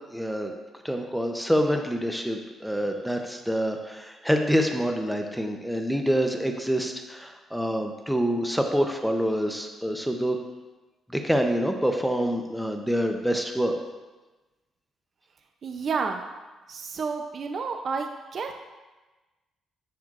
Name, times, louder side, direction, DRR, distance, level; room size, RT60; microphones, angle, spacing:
voice 1, 0.1-0.5 0.8-10.4 11.1-13.8, equal, ahead, 4 dB, 0.7 m, -26 dB
voice 2, 15.6-16.2 16.7-18.5, right 5 dB, 50° right, 4 dB, 0.5 m, -30 dB
10.5 x 6.1 x 2.5 m, 1.2 s
cardioid pair, 90°, 0 cm